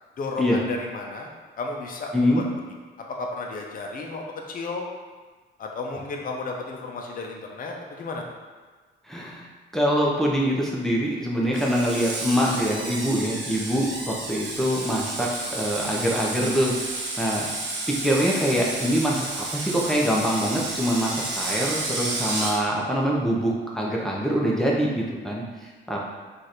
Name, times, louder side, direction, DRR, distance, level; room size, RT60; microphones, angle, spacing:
voice 1, 0.2-1.3 1.6-2.4 3.2-4.8 5.6-8.2, left 3 dB, 45° left, 0 dB, 0.6 m, -33 dB
voice 2, 9.1-9.4 9.7-17.5 17.9-25.4 25.9-26.0, equal, ahead, -4 dB, 0.7 m, -24 dB
Screech, 11.5-22.6, right 2 dB, 65° right, 0.9 m, -31 dB
3.1 x 2.5 x 4.2 m, 1.4 s
cardioid pair, 90°, 20 cm